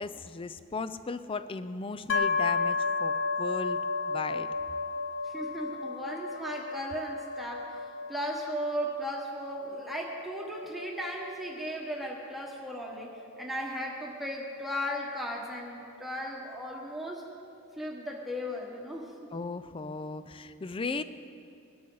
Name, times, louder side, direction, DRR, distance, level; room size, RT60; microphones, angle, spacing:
voice 1, 0.0-3.8 4.1-4.5 19.3-21.0, left 4 dB, 25° left, 12 dB, 0.4 m, -36 dB
sound 1, 2.1-15.8, left 4 dB, 60° left, 0.7 m, -34 dB
voice 2, 5.2-7.8 8.1-17.2 17.8-19.1, equal, ahead, -2 dB, 1.3 m, -36 dB
21.0 x 13.0 x 3.9 m, 2.5 s
head